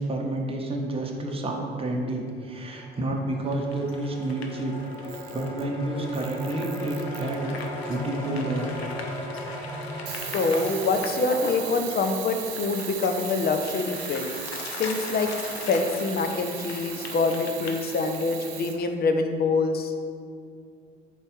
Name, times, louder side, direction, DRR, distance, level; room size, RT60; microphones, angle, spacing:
voice 1, 0.0-4.7 5.3-7.6 7.8-8.7, right 2 dB, 20° right, 0 dB, 0.9 m, -29 dB
sound 1, 2.3-10.8, left 1 dB, 10° left, 1.0 m, -37 dB
sound 2, 3.5-18.9, left 3 dB, 85° left, 0.6 m, -40 dB
Camera, 4.9-5.7 6.1-7.7 10.1-18.8, right 11 dB, 60° right, 0.6 m, -38 dB
voice 2, 10.1-14.3 14.8-15.3 15.7-19.9, left 3 dB, 30° left, 6 dB, 0.6 m, -25 dB
4.6 x 4.3 x 5.2 m, 2.2 s
figure-of-eight pair, 55°, 31 cm